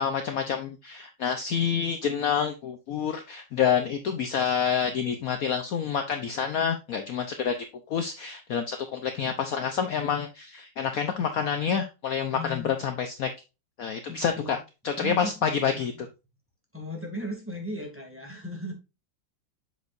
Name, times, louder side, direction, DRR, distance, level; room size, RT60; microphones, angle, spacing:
voice 1, 0.0-7.6 7.9-13.3 13.8-14.6 14.8-15.9, left 7 dB, 60° left, 7 dB, 1.0 m, -28 dB
voice 2, 12.3-12.8 14.1-14.5 15.0-16.1 16.7-18.7, equal, 5° right, 0 dB, 2.2 m, -37 dB
7.3 x 6.1 x 2.5 m, 0.27 s
omnidirectional pair, 2.0 m